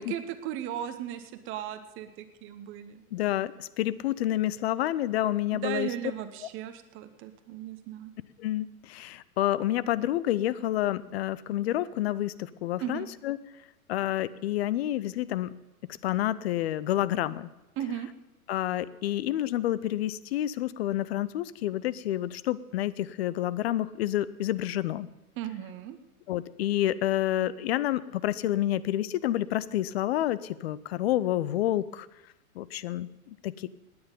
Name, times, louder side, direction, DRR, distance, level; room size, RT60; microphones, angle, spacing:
voice 1, 0.0-3.0 5.5-8.1 12.8-13.1 17.8-18.1 25.4-26.0, right 11 dB, 30° right, 10 dB, 1.0 m, -36 dB
voice 2, 3.1-5.9 8.4-13.4 13.9-15.6 15.8-17.5 18.5-25.1 26.3-32.1 32.6-33.7, left 13 dB, 45° left, 17 dB, 0.7 m, -29 dB
18.5 x 9.6 x 5.4 m, 1.0 s
figure-of-eight pair, 100°, 43 cm